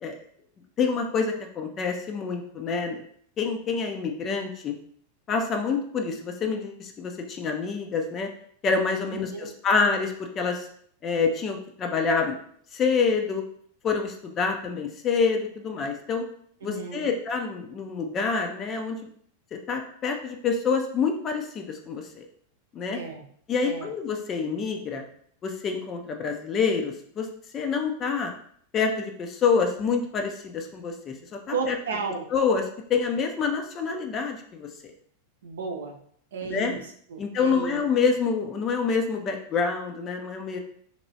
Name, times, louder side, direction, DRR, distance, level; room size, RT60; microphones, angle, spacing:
voice 1, 0.8-3.0 3.4-4.7 5.3-8.3 8.6-10.7 11.0-12.4 12.7-13.4 13.8-16.2 16.6-19.0 19.5-22.2 22.7-23.0 23.5-25.0 25.4-27.3 27.5-28.3 28.7-31.8 32.3-32.6 32.9-34.7 36.4-36.7 37.2-40.6, left 5 dB, 30° left, 4 dB, 0.4 m, -27 dB
voice 2, 9.1-9.5 16.6-17.1 22.9-23.2 23.6-23.9 31.5-32.3 35.4-36.0 36.3-36.8 37.1-37.8, right 4 dB, 60° right, 2 dB, 0.5 m, -33 dB
2.9 x 2.9 x 2.7 m, 0.62 s
figure-of-eight pair, 90°, 0 cm